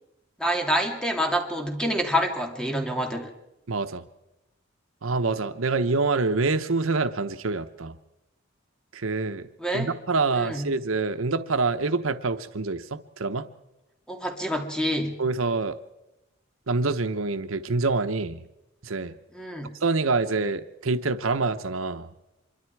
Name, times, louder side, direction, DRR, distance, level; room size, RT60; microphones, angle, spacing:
voice 1, 0.4-3.3 9.6-9.9 10.3-10.7 14.1-15.2 19.3-19.7, equal, 5° left, 3 dB, 2.8 m, -27 dB
voice 2, 3.7-4.0 5.0-8.0 8.9-9.5 9.7-13.5 15.2-15.8 16.7-18.4 18.8-19.1 19.8-22.1, right 3 dB, 85° right, 10 dB, 1.0 m, -26 dB
26.0 x 23.0 x 4.7 m, 0.94 s
head